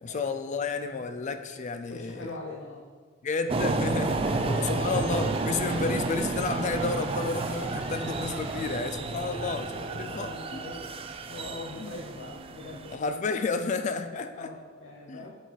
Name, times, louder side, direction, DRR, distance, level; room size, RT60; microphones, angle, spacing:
voice 1, 0.0-2.4 3.2-9.7 9.9-10.6 11.8-11.9 12.9-14.5 15.1-15.3, left 4 dB, 40° left, 9 dB, 0.4 m, -31 dB
voice 2, 1.9-2.8 4.3-4.7 9.1-10.9 11.3-13.0 14.3-15.3, left 2 dB, 80° left, -1 dB, 0.7 m, -42 dB
sound 1, 3.5-13.0, right 3 dB, 30° right, 0.3 m, -31 dB
sound 2, 3.9-8.8, right 2 dB, 80° right, 1.9 m, -43 dB
7.1 x 4.2 x 4.0 m, 1.5 s
head